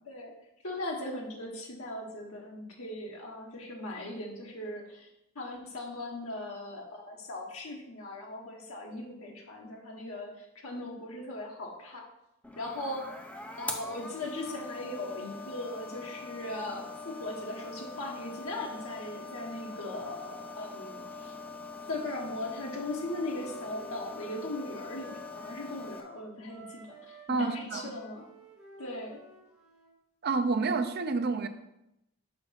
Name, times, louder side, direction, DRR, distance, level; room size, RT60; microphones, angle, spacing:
voice 1, 0.6-5.1 5.3-12.0 12.6-13.1 13.5-21.3 21.9-28.3 28.8-29.2, left 1 dB, 80° left, -1 dB, 1.2 m, -39 dB
sound 1, 12.4-26.0, left 3 dB, 5° left, 0.5 m, -43 dB
Wind instrument woodwind instrument, 23.0-26.0 26.4-29.9, right 1 dB, 10° right, 2.1 m, -53 dB
voice 2, 27.3-27.9 30.2-31.5, right 4 dB, 45° right, 9 dB, 0.5 m, -29 dB
6.8 x 3.9 x 5.7 m, 0.87 s
head